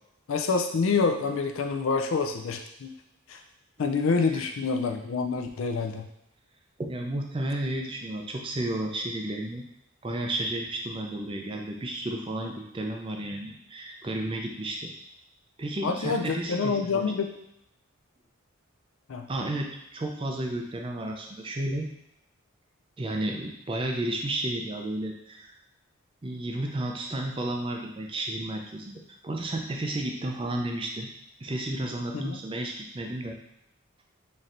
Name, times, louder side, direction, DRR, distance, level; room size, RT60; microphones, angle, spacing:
voice 1, 0.3-2.9 3.3-3.4 3.8-6.1 15.8-17.3 19.1-19.3 32.1-32.4, left 4 dB, 65° left, 5 dB, 0.4 m, -27 dB
voice 2, 6.8-9.6 10.0-14.9 15.6-17.0 19.3-21.9 23.0-25.5 26.2-31.1 31.4-33.4, right 1 dB, 25° right, 1 dB, 0.4 m, -32 dB
4.2 x 3.2 x 2.5 m, 0.79 s
head